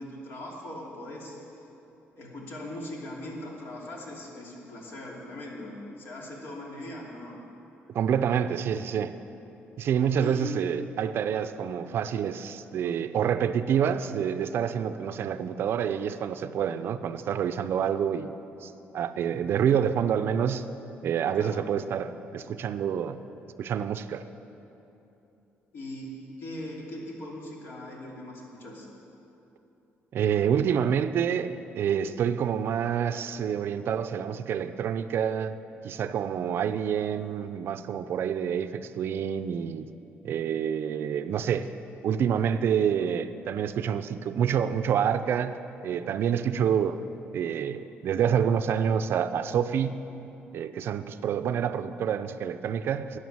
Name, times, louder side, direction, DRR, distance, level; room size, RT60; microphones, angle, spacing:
voice 1, 0.0-1.4 2.2-7.4 10.2-10.5 21.4-21.6 25.7-28.9, left 1 dB, 60° left, -2 dB, 2.8 m, -40 dB
voice 2, 7.9-9.2 9.8-18.4 18.6-20.7 21.0-23.2 23.6-24.2 30.1-35.6 35.8-39.9 40.2-41.7 42.0-47.0 47.3-50.0 50.5-53.2, right 8 dB, 60° right, 11 dB, 0.5 m, -27 dB
12.5 x 9.8 x 7.3 m, 3.0 s
cardioid pair, 140°, 5 cm